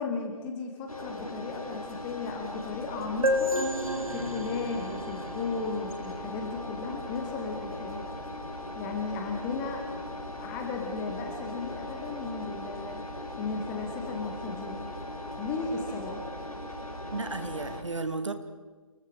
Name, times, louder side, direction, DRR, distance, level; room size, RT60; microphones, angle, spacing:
voice 1, 0.0-3.6 4.1-8.0 8.7-9.9 10.3-13.0 13.4-14.9 15.4-16.2, left 4 dB, 5° left, 3 dB, 1.1 m, -35 dB
Engine, 0.9-17.8, left 1 dB, 80° left, 4.8 m, -39 dB
sound 1, 3.2-6.8, left 1 dB, 75° right, 2.7 m, -31 dB
voice 2, 17.1-18.3, right 3 dB, 55° right, 8 dB, 2.4 m, -33 dB
29.0 x 20.5 x 4.9 m, 1.4 s
figure-of-eight pair, 155°, 18 cm